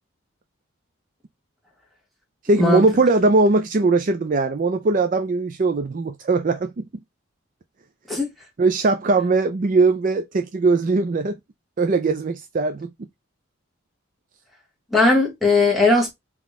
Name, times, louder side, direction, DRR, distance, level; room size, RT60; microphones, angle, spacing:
voice 1, 2.4-6.9 8.6-11.4 11.8-12.9, right 3 dB, 40° right, 0.4 m, -20 dB
voice 2, 14.9-16.1, left 3 dB, ahead, 1.5 m, -18 dB
3.8 x 3.0 x 3.5 m
head